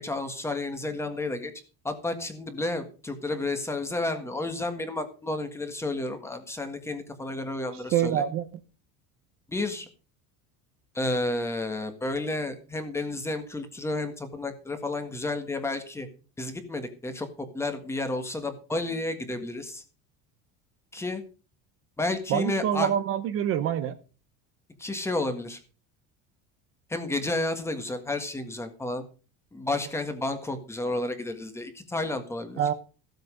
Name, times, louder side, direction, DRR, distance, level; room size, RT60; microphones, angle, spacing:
voice 1, 0.0-1.5 1.8-8.2 9.5-9.9 10.9-16.1 16.4-19.8 20.9-21.2 22.0-22.9 24.8-25.6 26.9-29.0 29.5-32.6, left 2 dB, 5° left, 7 dB, 1.6 m, -31 dB
voice 2, 7.9-8.5 22.3-23.9 32.6-32.7, right 10 dB, 40° right, 10 dB, 0.9 m, -25 dB
15.5 x 8.0 x 5.1 m, 0.36 s
cardioid pair, 180°, 35 cm